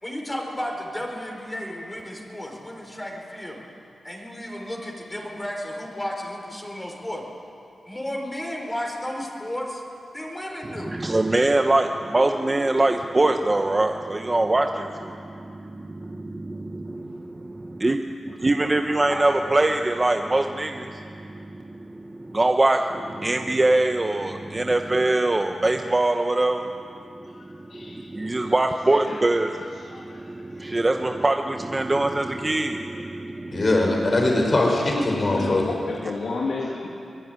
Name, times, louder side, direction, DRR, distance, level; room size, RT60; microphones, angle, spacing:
voice 1, 0.0-3.6 4.0-7.2 7.9-9.8 10.1-10.9 18.6-19.2, left 1 dB, 15° left, -1 dB, 4.5 m, -33 dB
voice 2, 10.9-26.7 27.2-33.7, right 2 dB, 25° right, 4 dB, 1.0 m, -23 dB
voice 3, 27.7-28.1 28.5-28.6 28.9-29.2 29.8-30.6 35.3-36.9, left 3 dB, 85° left, -3 dB, 2.7 m, -32 dB
voice 4, 33.5-35.6, left 2 dB, 40° left, -1 dB, 5.6 m, -21 dB
24.0 x 20.5 x 9.6 m, 2.6 s
wide cardioid pair, 105°, 0 cm